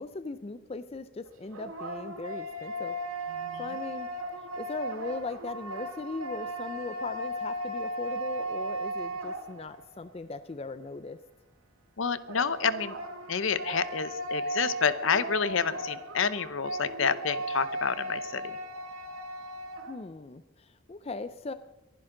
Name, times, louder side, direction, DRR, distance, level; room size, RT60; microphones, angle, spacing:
voice 1, 0.0-2.9 3.6-4.1 4.6-11.2 19.9-21.5, left 3 dB, 30° left, 12 dB, 0.4 m, -39 dB
sound 1, 1.2-10.0 12.3-20.0, right 1 dB, 85° right, 1.7 m, -36 dB
voice 2, 3.4-3.8 12.0-13.0 13.3-18.6, left 6 dB, 70° left, 14 dB, 0.8 m, -29 dB
23.0 x 10.5 x 3.8 m, 0.94 s
head